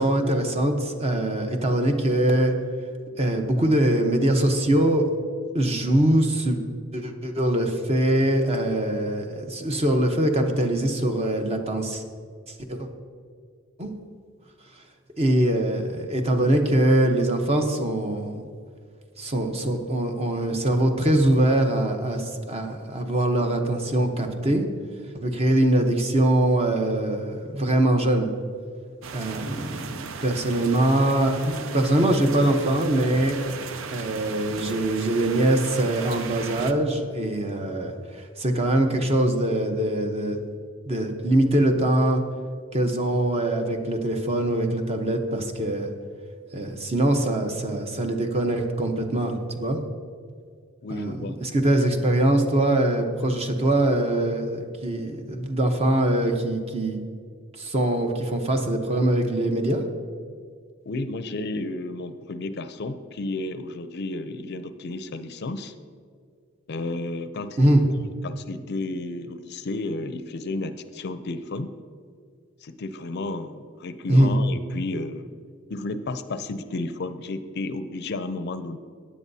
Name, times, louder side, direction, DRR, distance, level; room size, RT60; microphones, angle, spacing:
voice 1, 0.0-2.6 3.2-5.1 5.5-6.6 6.9-12.0 12.7-12.9 13.8-13.9 15.2-18.4 19.2-24.7 25.1-28.3 29.1-33.4 33.9-40.4 40.9-42.2 42.7-45.9 46.5-49.8 50.9-57.0 57.6-59.8 67.6-67.8 74.1-74.3, right 1 dB, 30° right, 4 dB, 0.9 m, -23 dB
sound 1, 29.0-36.7, right 5 dB, 75° right, 0.6 m, -36 dB
voice 2, 50.8-51.4 60.8-65.7 66.7-67.8 68.2-71.7 72.6-75.3 75.7-78.8, left 2 dB, 55° left, 11 dB, 0.5 m, -32 dB
15.5 x 9.8 x 2.7 m, 2.1 s
head